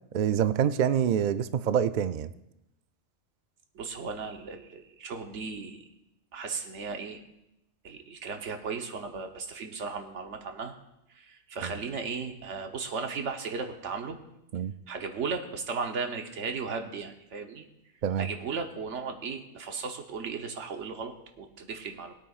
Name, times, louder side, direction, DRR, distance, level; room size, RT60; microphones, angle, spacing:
voice 1, 0.1-2.3 11.6-11.7 14.5-14.7 18.0-18.3, right 9 dB, 60° right, 12 dB, 0.5 m, -26 dB
voice 2, 3.7-5.8 6.3-7.2 7.8-10.7 11.1-14.2 14.9-17.6 18.2-22.1, right 5 dB, 85° right, 4 dB, 1.3 m, -36 dB
20.5 x 8.8 x 2.4 m, 0.86 s
omnidirectional pair, 1.2 m